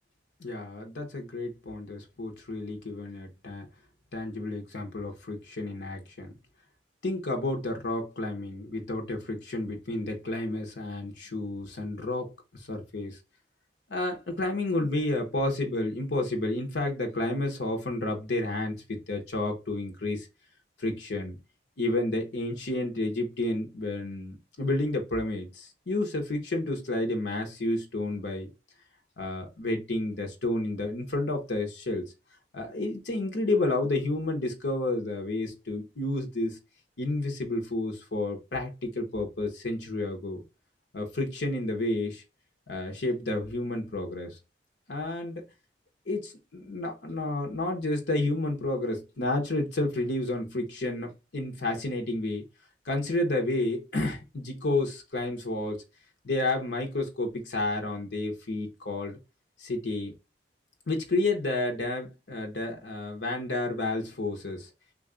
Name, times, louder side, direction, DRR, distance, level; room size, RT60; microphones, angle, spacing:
voice 1, 0.4-3.6 4.1-6.3 7.0-12.3 12.7-13.2 13.9-20.3 20.8-21.4 21.8-28.5 29.2-32.1 32.5-36.6 37.0-40.4 40.9-42.2 42.7-44.4 44.9-45.4 46.1-52.4 52.9-55.8 56.2-59.2 59.6-60.1 60.9-64.7, left 2 dB, 75° left, 0.9 m, -30 dB
3.3 x 2.5 x 3.6 m
head